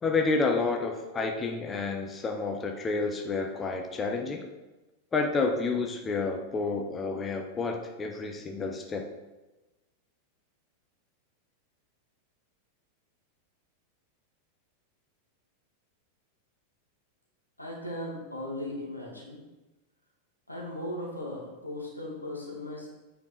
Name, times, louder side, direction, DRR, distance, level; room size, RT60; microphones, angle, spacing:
voice 1, 0.0-4.5 5.1-9.1, left 4 dB, 20° left, 3 dB, 0.8 m, -29 dB
voice 2, 17.6-19.4 20.5-22.9, left 1 dB, 85° left, -3 dB, 1.9 m, -37 dB
8.5 x 4.4 x 4.7 m, 1.1 s
figure-of-eight pair, 90°, 0 cm